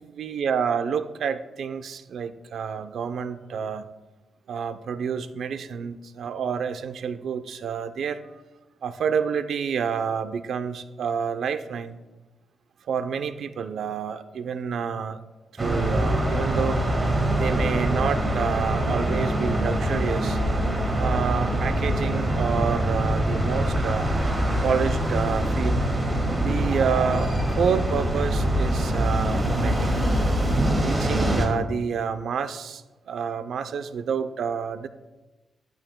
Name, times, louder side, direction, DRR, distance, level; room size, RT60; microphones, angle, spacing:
voice 1, 0.0-3.9 4.5-8.2 8.8-12.0 12.9-15.2 15.5-16.8 17.3-20.4 21.0-24.1 24.6-25.9 26.4-29.9 30.8-34.9, right 6 dB, 75° right, 10 dB, 0.6 m, -28 dB
sound 1, 15.6-31.5, right 1 dB, 25° right, 2.2 m, -24 dB
13.0 x 12.0 x 2.2 m, 1.1 s
cardioid pair, 80°, 0 cm